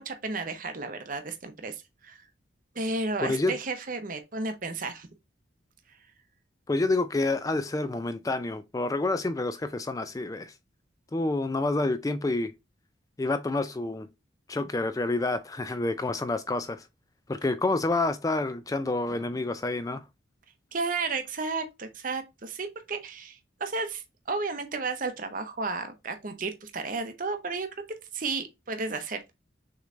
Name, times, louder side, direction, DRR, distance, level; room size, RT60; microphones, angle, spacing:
voice 1, 0.0-2.2 2.7-5.1 20.7-27.7 28.1-29.3, right 3 dB, 45° right, 0.7 m, -33 dB
voice 2, 3.2-3.6 6.7-10.5 11.1-12.5 13.2-14.1 14.5-16.8 17.3-20.0, left 2 dB, 20° left, 0.3 m, -28 dB
6.5 x 3.1 x 2.5 m
head